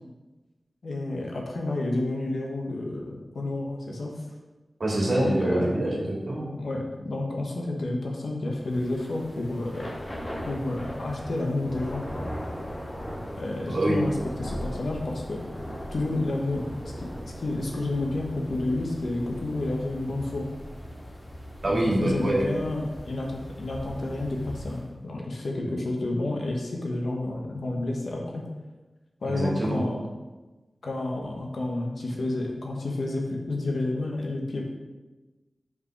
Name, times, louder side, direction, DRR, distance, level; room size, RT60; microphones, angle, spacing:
voice 1, 0.8-4.1 5.2-5.7 6.5-9.9 10.5-12.0 13.3-14.1 14.4-15.4 15.9-16.9 17.4-20.5 21.6-28.5 29.2-30.0 30.8-34.6, left 2 dB, 80° left, 0 dB, 1.2 m, -30 dB
voice 2, 4.8-6.5 13.7-14.0 21.6-22.5 29.4-29.8, right 1 dB, 55° right, -3 dB, 1.9 m, -25 dB
Thunder / Rain, 8.6-24.9, equal, 25° left, 1.4 m, -38 dB
5.7 x 5.2 x 4.7 m, 1.2 s
wide cardioid pair, 75°, 0 cm